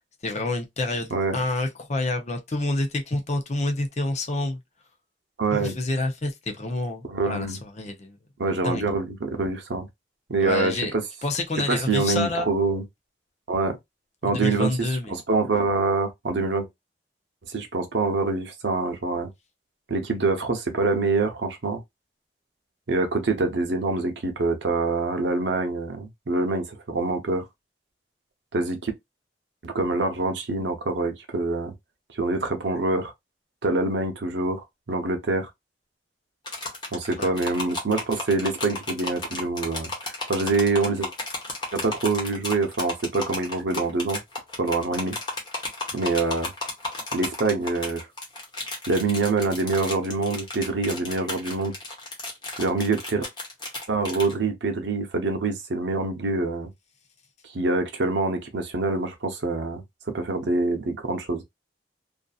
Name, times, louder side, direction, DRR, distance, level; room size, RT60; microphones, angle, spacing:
voice 1, 0.2-4.6 5.5-8.2 8.6-8.9 10.4-10.9 11.2-12.5 14.2-15.2 37.2-37.3, left 2 dB, 40° left, 0.6 m, -28 dB
voice 2, 5.4-5.8 7.0-7.6 8.4-9.9 10.3-11.0 11.7-12.8 13.5-13.8 14.2-16.7 17.5-19.3 19.9-21.8 22.9-27.4 28.5-28.9 29.6-31.7 32.1-33.1 33.6-34.6 34.9-35.5 36.9-41.1 41.7-44.2 44.6-45.2 45.9-46.5 47.1-48.1 48.9-51.7 52.6-53.2 53.9-56.7 57.5-59.8 60.1-61.4, right 3 dB, 90° right, 0.7 m, -25 dB
sound 1, 36.5-54.3, left 2 dB, 25° left, 1.0 m, -33 dB
2.6 x 2.4 x 2.3 m
head